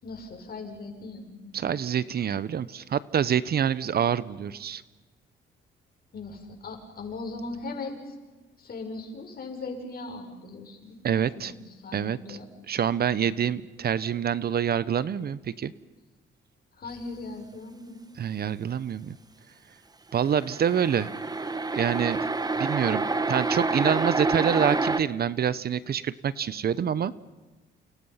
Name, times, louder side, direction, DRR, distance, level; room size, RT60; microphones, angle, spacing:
voice 1, 0.0-2.0 6.1-8.1 8.6-11.5 11.8-12.5 16.8-18.0, left 3 dB, 50° left, 3 dB, 6.6 m, -39 dB
voice 2, 1.5-4.8 11.0-11.5 11.9-12.4 12.7-15.7 18.2-19.1 20.1-21.1 21.7-22.2 22.6-27.1, right 8 dB, 50° right, 17 dB, 0.9 m, -26 dB
sound 1, 20.3-25.0, right 3 dB, 20° right, 1.4 m, -28 dB
29.0 x 29.0 x 5.8 m, 1.2 s
cardioid pair, 90°, 20 cm